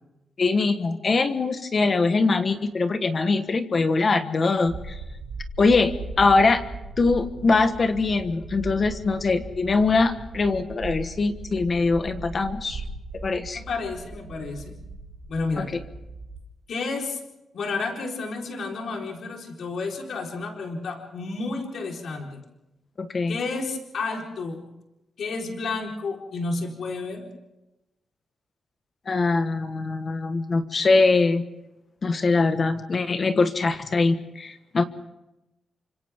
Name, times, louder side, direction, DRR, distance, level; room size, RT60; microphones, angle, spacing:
voice 1, 0.4-5.0 5.6-6.6 7.0-12.8 13.2-13.6 15.6-15.7 23.0-23.4 29.1-31.4 32.0-34.8, left 3 dB, 35° left, 9 dB, 1.3 m, -22 dB
sound 1, 4.7-16.4, right 3 dB, 60° right, 3.1 m, -38 dB
voice 2, 13.5-14.7 15.3-15.7 16.7-17.2 17.5-22.4 23.3-24.6 25.2-27.3, left 3 dB, 65° left, 1 dB, 4.1 m, -31 dB
29.0 x 25.5 x 3.6 m, 0.93 s
wide cardioid pair, 130°, 0 cm